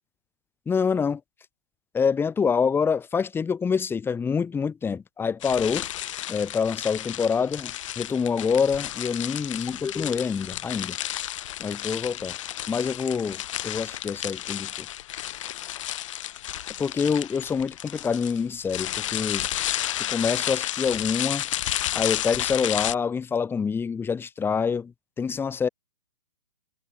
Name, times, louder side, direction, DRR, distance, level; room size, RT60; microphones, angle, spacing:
voice 1, 0.7-1.2 1.9-5.9 6.3-11.0 11.6-12.4 12.7-14.9 16.8-19.5 20.1-21.4 21.9-24.9 25.2-25.7, left 6 dB, 10° left, 2.2 m, -26 dB
sound 1, 5.4-22.9, left 13 dB, 50° left, 3.0 m, -32 dB
figure-of-eight pair, 125°, 21 cm